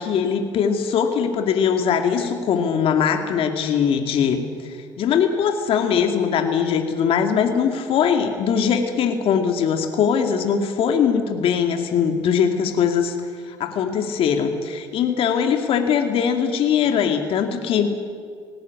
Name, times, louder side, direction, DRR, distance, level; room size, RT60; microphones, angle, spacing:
voice 1, 0.0-13.2 13.4-17.9, left 7 dB, 60° left, 5 dB, 2.3 m, -21 dB
19.5 x 18.0 x 9.6 m, 2.1 s
supercardioid pair, 75°, 11 cm